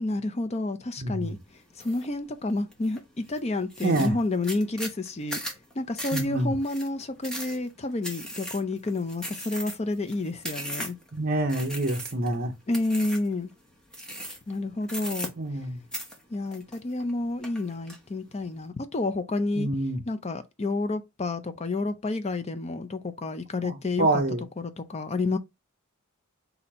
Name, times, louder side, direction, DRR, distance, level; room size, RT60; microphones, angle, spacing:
voice 1, 0.0-1.4 1.8-5.4 5.8-11.0 12.7-13.5 14.5-15.3 16.3-19.7 20.1-24.1 24.6-25.4, left 2 dB, 30° left, 0.5 m, -30 dB
voice 2, 1.0-1.3 3.8-4.2 6.1-6.6 11.1-12.5 15.4-15.8 19.5-20.0 23.6-24.4, right 2 dB, 40° right, 0.7 m, -27 dB
sound 1, 1.8-2.1 2.5-3.0 3.4-3.5 3.7-11.1 11.5-12.3 12.7-13.3 13.9-14.5 14.8-15.7 15.9-17.1 17.4-18.0, equal, 5° left, 0.9 m, -37 dB
4.2 x 2.8 x 4.2 m
head